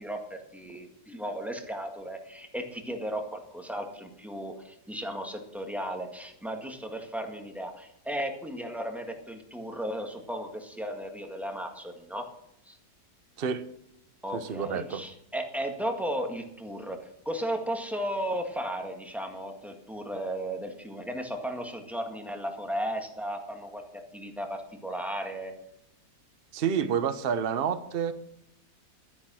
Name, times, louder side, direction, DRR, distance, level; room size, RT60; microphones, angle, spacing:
voice 1, 0.0-12.2 12.7-12.8 14.2-23.8 24.1-25.5, equal, ahead, 3 dB, 1.6 m, -35 dB
voice 2, 14.3-15.0 26.5-28.1, right 7 dB, 40° right, 11 dB, 0.9 m, -29 dB
12.0 x 10.0 x 6.2 m, 0.76 s
omnidirectional pair, 1.9 m